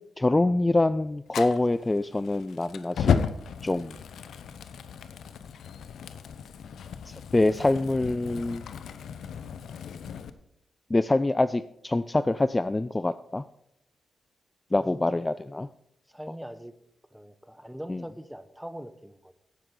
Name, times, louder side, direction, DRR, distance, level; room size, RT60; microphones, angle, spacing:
voice 1, 0.2-3.2 3.6-4.0 7.1-8.7 10.9-13.4 14.7-15.7 17.9-18.0, left 2 dB, 25° left, 14 dB, 0.4 m, -25 dB
Fire, 1.3-10.3, left 7 dB, 80° left, 0.7 m, -34 dB
voice 2, 16.1-16.7 17.1-19.3, equal, 5° right, 11 dB, 1.1 m, -42 dB
16.0 x 7.6 x 3.9 m, 0.77 s
supercardioid pair, 50°, 0 cm